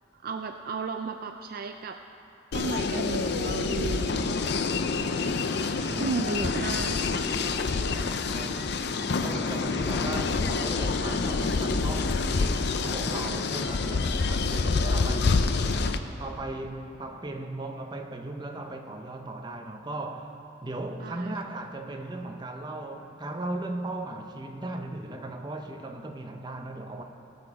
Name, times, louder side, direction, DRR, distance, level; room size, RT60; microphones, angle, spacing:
voice 1, 0.1-2.0 2.5-4.6 5.9-7.0 7.7-7.8 21.0-21.3, right 4 dB, 45° right, 6 dB, 0.3 m, -34 dB
sound 1, 2.5-16.0, left 4 dB, 55° left, 0.5 m, -27 dB
voice 2, 5.8-6.3 8.2-15.5 16.2-20.3 20.6-27.0, right 2 dB, 20° right, 4 dB, 0.7 m, -37 dB
18.0 x 6.9 x 4.8 m, 2.9 s
head